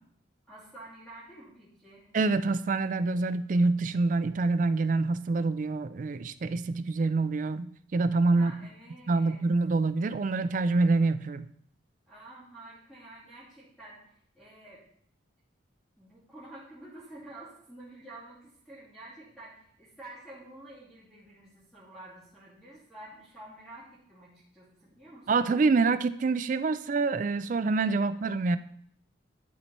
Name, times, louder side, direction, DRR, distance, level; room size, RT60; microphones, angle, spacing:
voice 1, 0.5-2.1 8.3-9.5 12.1-14.8 16.0-25.5, right 2 dB, ahead, -10 dB, 2.7 m, -49 dB
voice 2, 2.1-8.5 9.1-11.5 25.3-28.6, right 3 dB, 40° right, 13 dB, 0.3 m, -26 dB
11.0 x 4.4 x 4.2 m, 0.66 s
head